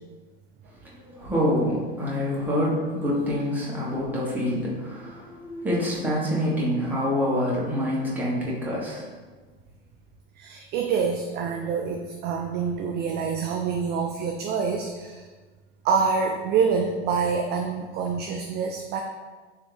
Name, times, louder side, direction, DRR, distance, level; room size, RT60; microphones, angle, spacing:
voice 1, 0.8-9.1, equal, 5° right, -7 dB, 1.4 m, -26 dB
voice 2, 10.4-15.3 15.8-19.0, right 5 dB, 35° right, 3 dB, 0.4 m, -26 dB
3.6 x 3.2 x 3.4 m, 1.4 s
hypercardioid pair, 90°, 30 cm